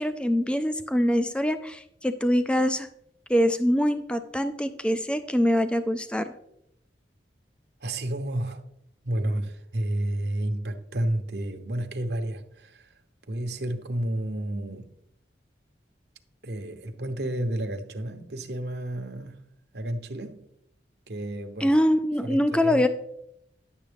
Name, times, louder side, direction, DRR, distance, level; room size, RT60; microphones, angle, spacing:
voice 1, 0.0-2.9 3.3-6.3 21.6-22.9, equal, 5° left, 0.3 m, -24 dB
voice 2, 7.8-8.6 9.0-12.9 13.3-15.0 16.4-19.4 19.7-20.5 21.1-21.7 22.2-22.9, right 1 dB, 65° right, 0.9 m, -31 dB
10.5 x 7.2 x 3.4 m
head